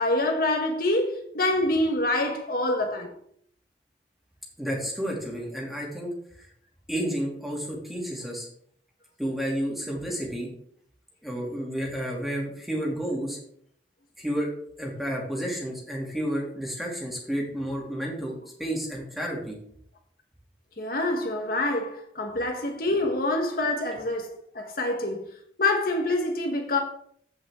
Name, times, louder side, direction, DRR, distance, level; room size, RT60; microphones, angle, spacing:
voice 1, 0.0-3.1 20.8-24.3 24.5-25.2 25.6-26.8, left 2 dB, 55° left, 1.3 m, -26 dB
voice 2, 4.6-6.1 6.4-6.5 6.9-8.5 9.2-10.5 11.2-13.4 14.2-14.5 14.8-19.6, equal, ahead, 2.5 m, -31 dB
15.5 x 5.4 x 3.7 m
head